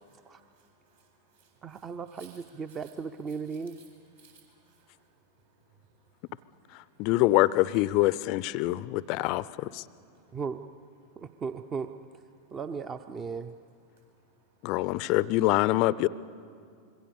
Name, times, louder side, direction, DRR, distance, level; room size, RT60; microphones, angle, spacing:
voice 1, 0.3-1.9 2.1-2.4 2.7-2.9 3.3-3.8 4.2-5.2 5.6-7.1 8.7-9.0 9.5-9.6 10.0-10.4 11.0-11.3 12.4-12.6 14.1-14.2 14.5-14.6, right 5 dB, 65° right, 0 dB, 7.9 m, -62 dB
voice 2, 1.6-3.8 10.3-10.6 11.2-11.9 12.5-13.6, right 5 dB, 25° right, 10 dB, 0.6 m, -36 dB
voice 3, 7.0-9.8 14.6-16.1, left 18 dB, 40° left, 19 dB, 0.5 m, -25 dB
26.0 x 22.5 x 6.8 m, 2.4 s
figure-of-eight pair, 90°, 0 cm